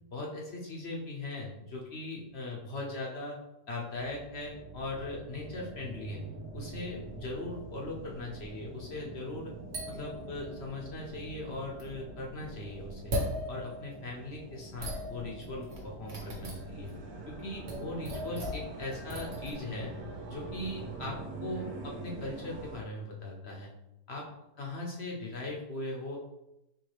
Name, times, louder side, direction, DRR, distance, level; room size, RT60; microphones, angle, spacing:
voice 1, 0.1-3.4 3.7-6.3 6.5-9.5 9.9-13.2 13.5-16.9 17.3-20.0 20.3-23.7 24.1-24.3 24.6-26.2, left 2 dB, 55° left, -1 dB, 0.8 m, -39 dB
sound 1, 3.9-22.8, right 3 dB, 80° right, 1.2 m, -44 dB
sound 2, 9.7-10.9 11.8-11.9 13.1-14.2 14.8-16.9 17.7-19.5, equal, 50° right, 1.2 m, -38 dB
4.7 x 3.2 x 3.3 m, 0.89 s
omnidirectional pair, 1.6 m